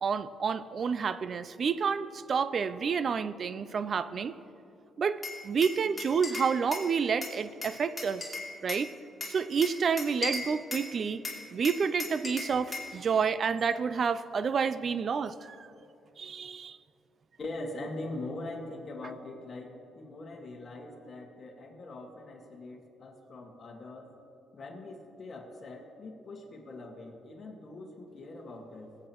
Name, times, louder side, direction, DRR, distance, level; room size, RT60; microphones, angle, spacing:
voice 1, 0.0-4.3 5.0-8.3 8.6-8.9 9.2-11.2 11.5-15.7 16.2-16.8, right 6 dB, 50° right, 15 dB, 0.4 m, -29 dB
Glass, 5.2-6.9 7.2-8.9 9.2-10.9 11.2-12.9, left 3 dB, 20° left, 2.8 m, -37 dB
voice 2, 17.4-24.1 24.5-29.0, left 2 dB, 45° left, 2 dB, 1.7 m, -42 dB
19.5 x 8.7 x 3.0 m, 2.7 s
cardioid pair, 90°, 0 cm